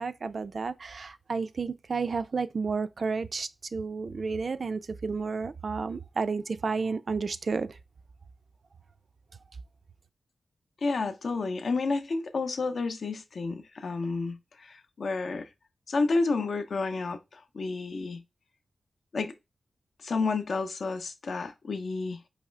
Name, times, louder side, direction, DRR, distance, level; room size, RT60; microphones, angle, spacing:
voice 1, 0.0-7.8, right 4 dB, 50° right, 0.3 m, -31 dB
voice 2, 10.8-15.5 15.9-18.2 19.1-19.3 20.0-22.2, left 3 dB, 60° left, 0.6 m, -30 dB
4.8 x 3.1 x 3.2 m
wide cardioid pair, 155°, 0 cm